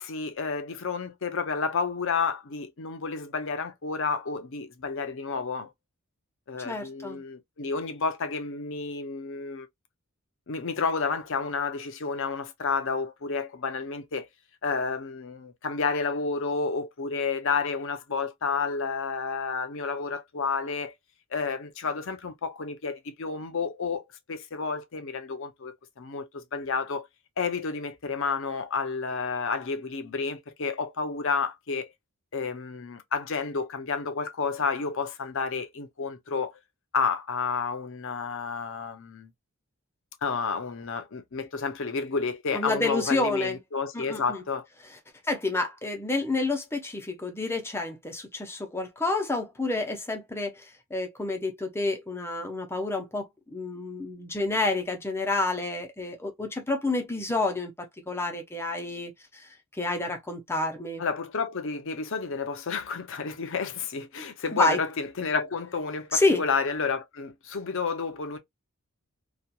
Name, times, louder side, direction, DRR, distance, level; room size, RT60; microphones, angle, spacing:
voice 1, 0.0-5.7 6.5-9.7 10.5-14.3 14.6-20.9 21.3-27.1 27.4-31.9 32.3-36.5 36.9-39.3 40.2-44.7 61.0-68.4, left 5 dB, 60° left, 0.6 m, -30 dB
voice 2, 6.6-7.2 42.5-43.6 43.9-44.4 45.3-59.4 59.8-61.0 64.5-64.8 66.1-66.4, left 2 dB, 10° left, 0.6 m, -29 dB
2.9 x 2.4 x 2.2 m
head